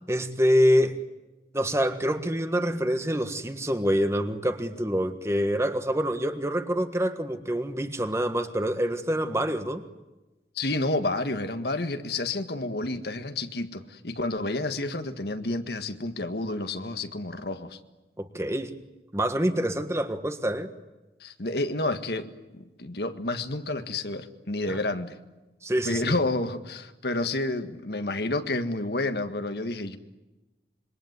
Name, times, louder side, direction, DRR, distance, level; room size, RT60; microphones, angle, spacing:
voice 1, 0.1-1.0 1.5-9.8 18.2-18.7 19.1-20.7 24.7-24.8 25.6-26.1, equal, 15° right, 8 dB, 1.5 m, -26 dB
voice 2, 10.6-17.8 21.2-25.2 25.8-30.0, left 2 dB, 65° left, 9 dB, 1.7 m, -30 dB
26.5 x 23.5 x 9.5 m, 1.1 s
head